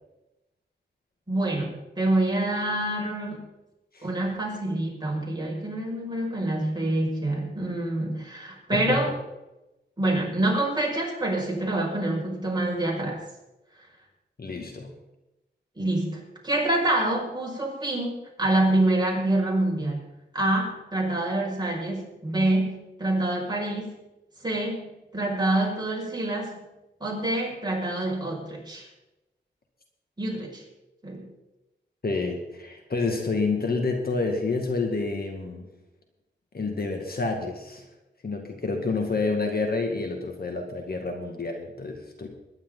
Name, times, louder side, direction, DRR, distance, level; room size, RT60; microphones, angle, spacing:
voice 1, 1.3-3.5 4.0-9.1 10.0-13.2 15.8-20.0 20.3-24.0 24.4-26.6 27.0-28.9 30.2-30.6 31.0-31.3, right 1 dB, 20° right, -3 dB, 6.3 m, -26 dB
voice 2, 8.7-9.1 14.4-15.0 32.0-35.7 36.5-37.9 38.2-42.3, left 3 dB, 55° left, 3 dB, 2.2 m, -28 dB
21.5 x 10.5 x 4.0 m, 0.97 s
cardioid pair, 70°, 19 cm